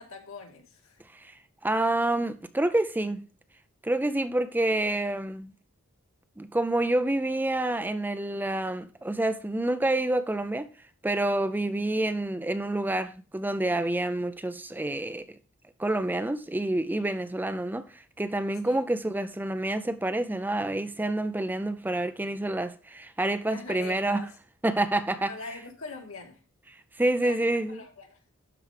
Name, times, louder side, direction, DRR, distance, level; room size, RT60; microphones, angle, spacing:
voice 1, 0.0-1.0 18.6-18.8 23.4-24.3 25.3-26.4 27.2-28.2, left 3 dB, 70° left, 2.1 m, -42 dB
voice 2, 1.6-3.2 3.8-5.5 6.4-10.7 11.0-15.2 15.8-24.3 24.6-25.3 27.0-27.8, right 1 dB, 10° right, 0.4 m, -28 dB
12.0 x 4.6 x 5.0 m
head